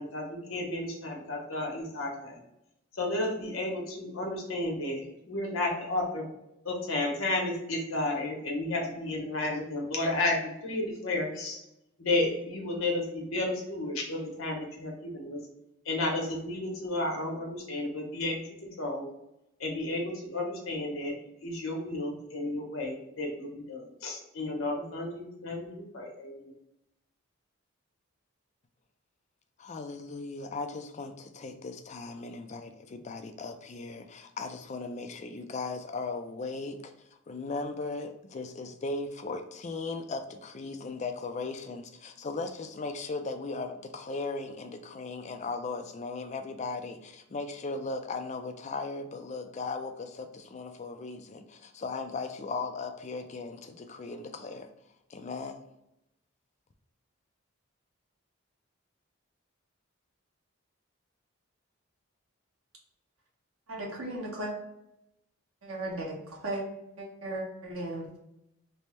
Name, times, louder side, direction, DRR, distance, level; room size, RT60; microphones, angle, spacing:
voice 1, 0.0-2.4 3.0-6.2 6.6-11.6 12.0-15.4 15.8-18.4 18.8-19.1 19.6-21.1 21.4-26.5, left 2 dB, 80° left, 0 dB, 1.0 m, -32 dB
voice 2, 29.6-36.9 37.3-54.7 55.1-55.7, left 3 dB, 35° left, 6 dB, 0.3 m, -37 dB
voice 3, 63.7-64.5 65.6-66.6 67.0-68.2, right 1 dB, 90° right, -2 dB, 1.1 m, -36 dB
3.3 x 2.1 x 4.2 m, 0.85 s
head